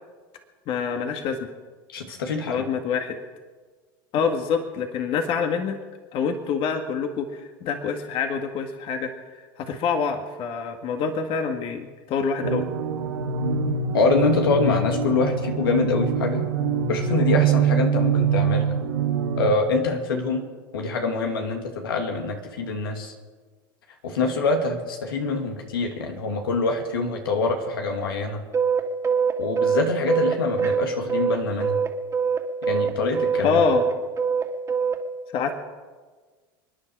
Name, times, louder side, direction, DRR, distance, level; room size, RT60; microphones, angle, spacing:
voice 1, 0.7-1.5 2.5-3.2 4.1-5.8 6.1-9.1 9.6-12.6 33.4-33.8 35.3-35.5, left 6 dB, 50° left, 5 dB, 1.8 m, -26 dB
voice 2, 1.9-2.6 13.9-16.5 16.9-18.8 19.3-20.4 20.7-23.1 24.0-28.4 29.4-31.8 32.6-33.6, left 3 dB, 85° left, 3 dB, 2.4 m, -25 dB
sound 1, 12.4-19.5, right 6 dB, 85° right, 1.6 m, -24 dB
sound 2, 28.5-31.9 32.1-35.0, right 6 dB, 25° right, 2.3 m, -23 dB
30.0 x 10.0 x 4.7 m, 1.4 s
hypercardioid pair, 95°, 12 cm